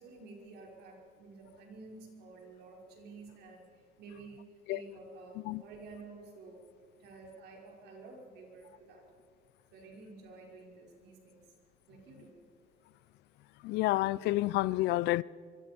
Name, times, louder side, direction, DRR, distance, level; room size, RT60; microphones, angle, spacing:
voice 1, 0.0-6.6 7.0-9.0 9.7-11.4 11.9-12.4, right 3 dB, 80° right, 5.5 m, -51 dB
voice 2, 13.6-15.2, left 17 dB, 80° left, 0.5 m, -29 dB
25.0 x 23.5 x 5.3 m
cardioid pair, 110°, 17 cm